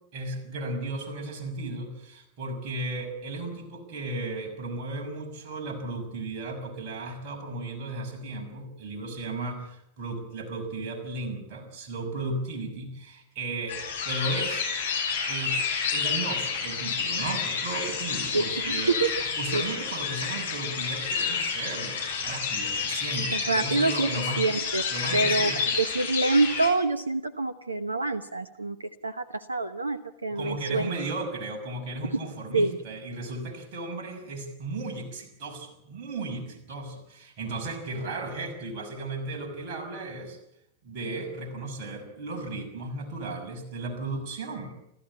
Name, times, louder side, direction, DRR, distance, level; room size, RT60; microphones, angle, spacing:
voice 1, 0.1-13.8 14.0-14.7 15.2-15.6 15.9-18.9 19.4-24.5 24.9-25.8 30.3-40.4 40.8-44.8, right 2 dB, 45° right, 3 dB, 6.0 m, -35 dB
sound 1, 13.7-26.7, left 5 dB, 65° left, 6.5 m, -29 dB
voice 2, 18.3-19.1 19.5-19.6 23.3-24.8 25.1-30.9 32.1-32.8, right 3 dB, 80° right, 14 dB, 0.9 m, -27 dB
30.0 x 13.5 x 8.6 m, 0.79 s
figure-of-eight pair, 90°, 0 cm